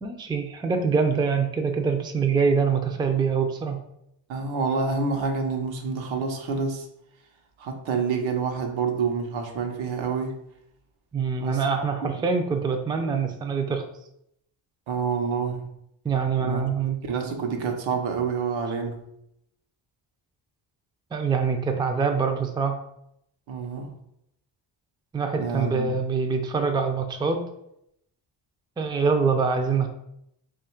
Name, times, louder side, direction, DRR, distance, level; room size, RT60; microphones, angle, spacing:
voice 1, 0.0-3.8 11.1-13.8 16.0-17.0 21.1-22.8 25.1-27.4 28.8-29.9, right 5 dB, 10° right, 5 dB, 0.4 m, -24 dB
voice 2, 4.3-6.9 7.6-10.4 11.4-11.9 14.9-15.7 16.4-16.6 17.0-19.0 23.5-23.9 25.3-25.9, right 5 dB, 80° right, 3 dB, 0.8 m, -28 dB
3.1 x 2.5 x 4.3 m, 0.77 s
cardioid pair, 85°, 46 cm